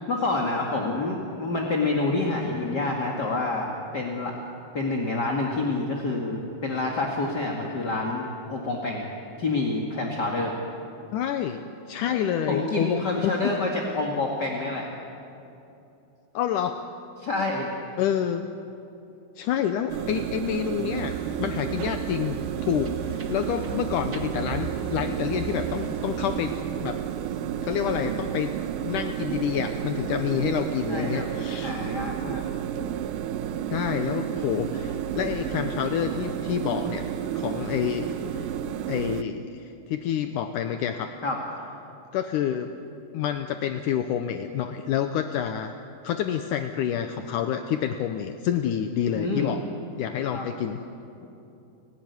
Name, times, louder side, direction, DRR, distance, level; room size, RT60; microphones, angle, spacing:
voice 1, 0.1-4.3 4.7-8.2 8.5-9.0 9.4-10.5 12.1-14.9 17.2-17.8 30.9-31.3 31.6-32.4 41.2-41.4 49.1-49.5 50.3-50.5 51.2-51.3, left 2 dB, 35° left, -1 dB, 1.9 m, -28 dB
voice 2, 11.1-13.6 16.3-16.8 18.0-18.4 19.4-26.5 26.8-27.0 27.6-28.5 28.8-31.7 33.7-37.1 37.3-38.5 38.9-41.1 42.1-42.7 43.1-45.7 46.0-49.6 50.0-50.8, left 9 dB, 75° left, 7 dB, 1.9 m, -28 dB
sound 1, 19.9-39.2, right 9 dB, 75° right, 2.0 m, -31 dB
sound 2, 20.9-26.6, right 5 dB, 40° right, 1.4 m, -39 dB
30.0 x 18.5 x 9.6 m, 2.8 s
omnidirectional pair, 4.7 m